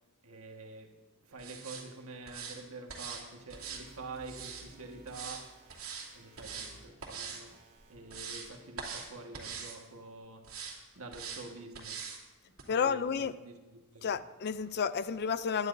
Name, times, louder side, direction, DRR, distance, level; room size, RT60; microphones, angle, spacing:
voice 1, 0.2-1.0 1.3-5.5 6.1-7.6 7.9-10.6 10.9-12.1 12.4-14.3, right 3 dB, 90° right, 1.5 m, -47 dB
sound 1, 1.4-1.8 2.3-2.6 2.9-3.2 3.5-4.6 5.1-5.4 5.7-6.1 6.4-6.7 7.0-7.4 7.8-8.5 8.8-9.1 9.3-9.8 10.4-10.7 11.1-11.4 11.7-12.2 12.6-12.7, right 6 dB, 75° right, 2.6 m, -42 dB
sound 2, 3.5-6.9 7.4-8.8, right 2 dB, 40° right, 3.2 m, -57 dB
voice 2, 12.7-13.3 14.0-15.7, left 6 dB, 50° left, 0.4 m, -31 dB
19.5 x 11.5 x 2.6 m
head